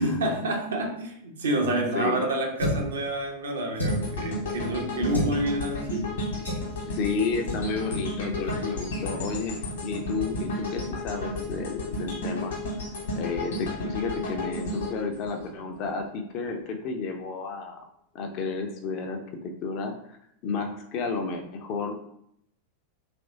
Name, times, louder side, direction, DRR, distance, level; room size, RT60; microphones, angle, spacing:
voice 1, 0.0-6.2 9.9-10.0, right 1 dB, 65° right, 2 dB, 0.5 m, -28 dB
voice 2, 1.7-2.2 6.9-12.6 13.2-17.8 18.1-19.9 20.4-21.9, left 4 dB, 40° left, 3 dB, 0.4 m, -31 dB
sound 1, 2.6-2.9 3.7-4.2 5.1-5.4 6.4-6.7 7.5-7.6 7.9-8.1 8.4-8.6, equal, 85° left, 0.9 m, -29 dB
sound 2, 3.9-16.0 16.5-16.6, left 2 dB, 60° left, 1.1 m, -33 dB
2.9 x 2.5 x 2.6 m, 0.72 s
figure-of-eight pair, 90°, 0 cm